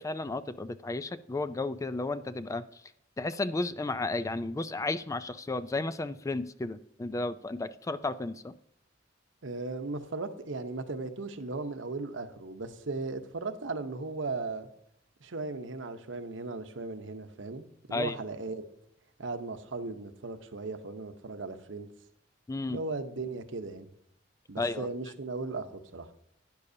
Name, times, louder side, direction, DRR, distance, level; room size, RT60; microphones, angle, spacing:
voice 1, 0.0-2.8 3.2-8.5 17.9-18.1 22.5-22.8 24.6-24.9, left 2 dB, 15° left, 14 dB, 0.3 m, -33 dB
voice 2, 9.4-14.7 15.2-18.6 19.2-21.9 22.7-23.9 24.5-26.1, right 3 dB, 90° right, 9 dB, 0.9 m, -37 dB
12.0 x 9.6 x 2.7 m, 0.77 s
head